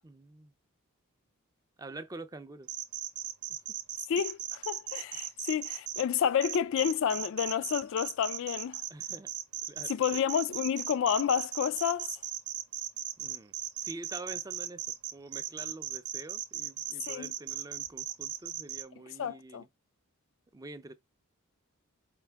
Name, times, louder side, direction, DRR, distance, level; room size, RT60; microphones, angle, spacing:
voice 1, 0.0-0.5 1.8-2.7 8.9-9.3 9.7-10.2 13.2-13.5 13.8-14.8 15.1-19.7 20.5-20.9, right 2 dB, 15° right, 0.4 m, -46 dB
sound 1, 2.7-6.0 6.4-18.8, right 11 dB, 85° right, 0.8 m, -37 dB
voice 2, 4.1-8.8 9.9-12.1 17.1-17.3 19.2-19.6, left 8 dB, 60° left, 0.3 m, -30 dB
4.6 x 2.5 x 3.4 m
head